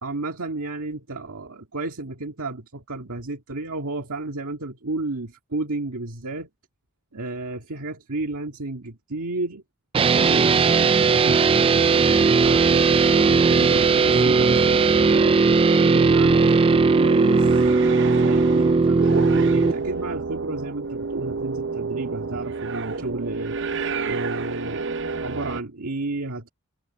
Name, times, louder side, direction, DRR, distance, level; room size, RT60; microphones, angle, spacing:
voice 1, 0.0-6.5 7.1-9.6 10.2-13.2 13.5-15.4 15.9-17.7 18.2-23.6 24.0-24.9 25.2-26.5, right 2 dB, 75° right, 2.0 m, -32 dB
sound 1, 9.9-19.7, right 4 dB, 25° right, 0.3 m, -18 dB
sound 2, 12.4-25.6, right 4 dB, 60° right, 0.8 m, -30 dB
head